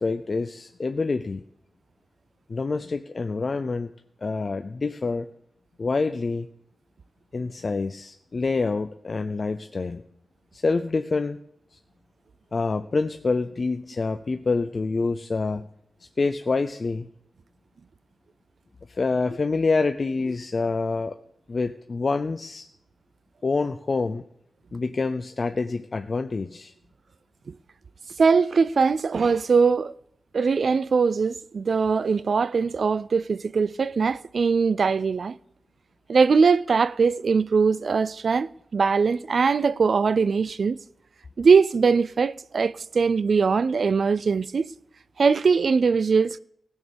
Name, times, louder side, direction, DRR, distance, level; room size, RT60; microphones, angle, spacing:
voice 1, 0.0-1.4 2.5-3.9 4.2-5.3 5.8-6.5 7.3-10.0 10.5-11.4 11.7-11.8 12.5-15.7 16.2-17.1 18.9-21.1 21.5-22.7 23.4-24.2 24.7-26.7, left 3 dB, 50° left, 0.5 m, -26 dB
voice 2, 28.2-29.9 30.3-35.3 36.1-40.8 41.4-44.7 45.2-46.4, right 5 dB, 70° right, 0.4 m, -21 dB
16.0 x 6.4 x 6.9 m
wide cardioid pair, 105°, 0 cm